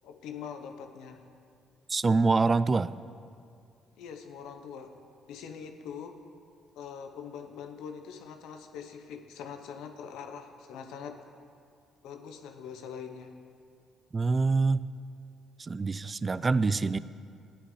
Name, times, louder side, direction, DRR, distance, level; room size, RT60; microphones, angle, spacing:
voice 1, 0.0-1.2 4.0-4.9 5.3-6.2 6.8-11.2 12.0-13.4, left 7 dB, 80° left, 6 dB, 0.8 m, -43 dB
voice 2, 1.9-2.9 14.1-14.8 15.6-17.0, right 4 dB, 30° right, 16 dB, 0.3 m, -25 dB
14.0 x 9.8 x 3.2 m, 2.3 s
supercardioid pair, 70°, 0 cm